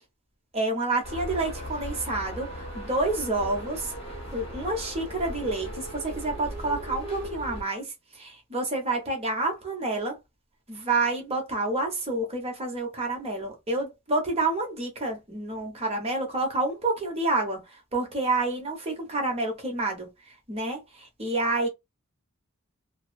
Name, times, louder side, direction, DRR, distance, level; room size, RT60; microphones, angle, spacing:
voice 1, 0.5-3.9 4.3-10.2 10.7-21.7, right 2 dB, 25° right, 0.9 m, -29 dB
sound 1, 1.0-7.6, equal, 25° left, 0.9 m, -37 dB
2.6 x 2.0 x 2.5 m
head